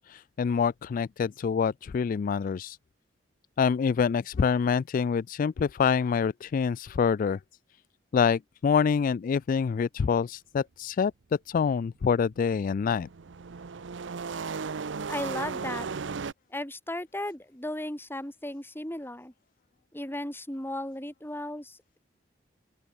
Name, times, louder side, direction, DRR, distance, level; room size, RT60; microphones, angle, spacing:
voice 1, 0.0-2.8 3.6-7.4 8.1-11.1 11.5-13.1, left 6 dB, 50° left, 0.3 m, -26 dB
sound 1, 12.8-16.3, right 5 dB, 85° right, 0.6 m, -35 dB
voice 2, 15.1-15.9 16.5-19.3 19.9-22.0, left 1 dB, 10° left, 5.1 m, -35 dB
open air
head